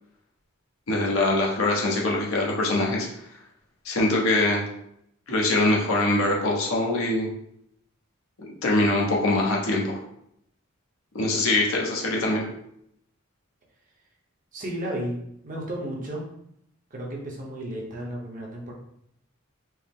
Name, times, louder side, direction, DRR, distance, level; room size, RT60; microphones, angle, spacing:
voice 1, 0.9-3.1 3.8-4.6 5.3-7.3 8.4-10.0 11.1-12.4, left 2 dB, 80° left, -2 dB, 1.0 m, -23 dB
voice 2, 14.5-15.2 15.4-16.3 16.9-18.7, right 1 dB, 40° right, -2 dB, 0.9 m, -33 dB
4.6 x 2.0 x 3.6 m, 0.75 s
head